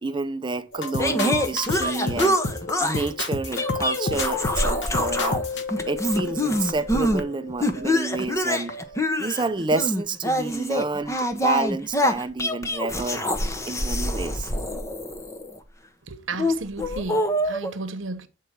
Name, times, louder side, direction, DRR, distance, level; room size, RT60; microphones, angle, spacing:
voice 1, 0.0-2.4 2.8-5.4 5.8-8.7 9.2-13.2 13.6-14.5, right 3 dB, 25° right, 0.5 m, -29 dB
Forest River, 0.7-8.4 8.7-9.0, left 2 dB, 65° left, 1.2 m, -31 dB
sound 1, 1.0-3.1 3.5-5.4 5.7-7.2 7.6-15.6 16.3-17.7, equal, 15° left, 0.9 m, -25 dB
voice 2, 16.1-18.3, right 3 dB, 80° right, 1.0 m, -34 dB
8.5 x 4.5 x 5.9 m
head